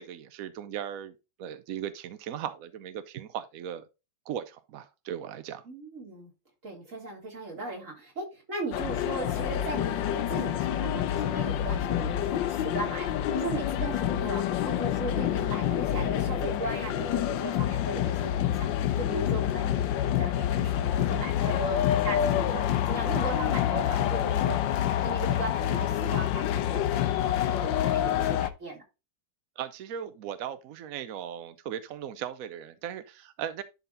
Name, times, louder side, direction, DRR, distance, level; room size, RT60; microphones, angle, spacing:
voice 1, 0.0-3.8 4.3-5.6 29.6-33.6, right 9 dB, 70° right, 0.8 m, -38 dB
voice 2, 5.7-6.3 6.6-24.6 25.0-28.8, right 3 dB, 40° right, 3.6 m, -37 dB
sound 1, 8.7-28.5, left 11 dB, 75° left, 1.4 m, -27 dB
11.0 x 4.1 x 3.9 m
omnidirectional pair, 2.1 m